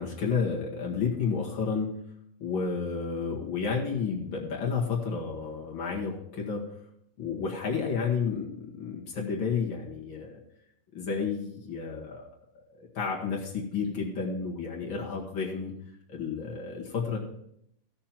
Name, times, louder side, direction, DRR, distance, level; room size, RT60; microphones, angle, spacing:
voice 1, 0.0-1.9 2.4-6.6 7.2-10.4 10.9-12.2 12.8-15.7 16.1-17.2, left 5 dB, 90° left, -2 dB, 2.7 m, -31 dB
15.5 x 6.6 x 4.4 m, 0.74 s
omnidirectional pair, 2.1 m